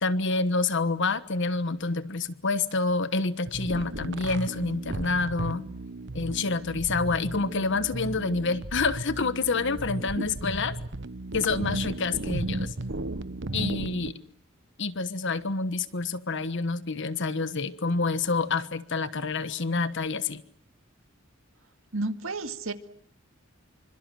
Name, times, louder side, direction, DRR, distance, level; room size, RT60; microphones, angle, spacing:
voice 1, 0.0-5.7 6.1-10.8 11.3-12.7 13.5-14.2 14.8-20.4, left 3 dB, 60° left, 14 dB, 1.3 m, -28 dB
sound 1, 3.5-14.1, right 2 dB, 60° right, 1.1 m, -35 dB
voice 2, 21.9-22.7, right 2 dB, 80° right, 9 dB, 2.2 m, -31 dB
27.5 x 25.5 x 7.6 m, 0.65 s
head